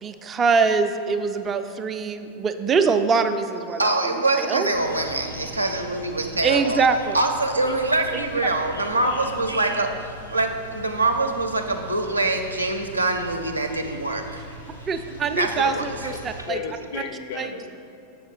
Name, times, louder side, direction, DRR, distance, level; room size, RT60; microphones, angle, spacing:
voice 1, 0.0-3.9 4.4-4.7 6.4-7.2 14.9-16.6 17.4-17.5, right 5 dB, 25° right, 8 dB, 0.4 m, -23 dB
voice 2, 3.8-6.9 7.1-10.0 10.3-14.4 15.4-16.1, right 2 dB, 85° right, 4 dB, 0.6 m, -24 dB
sound 1, 4.7-16.4, right 1 dB, 85° left, 1.2 m, -41 dB
voice 3, 9.0-9.7 16.1-17.8, left 5 dB, 50° left, 6 dB, 0.7 m, -35 dB
7.3 x 5.7 x 4.1 m, 2.6 s
figure-of-eight pair, 90°, 0 cm